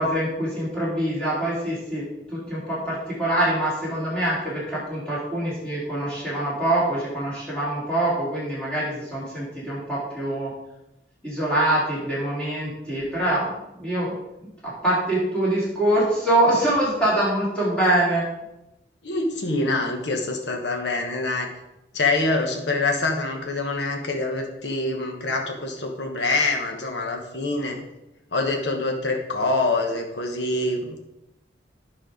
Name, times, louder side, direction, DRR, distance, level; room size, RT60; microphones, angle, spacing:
voice 1, 0.0-10.5 11.2-14.1 14.6-18.3, right 1 dB, 5° left, -9 dB, 3.5 m, -24 dB
voice 2, 19.0-21.5 21.9-27.8 28.3-31.0, left 2 dB, 70° left, 3 dB, 1.1 m, -25 dB
9.3 x 5.6 x 5.0 m, 0.92 s
head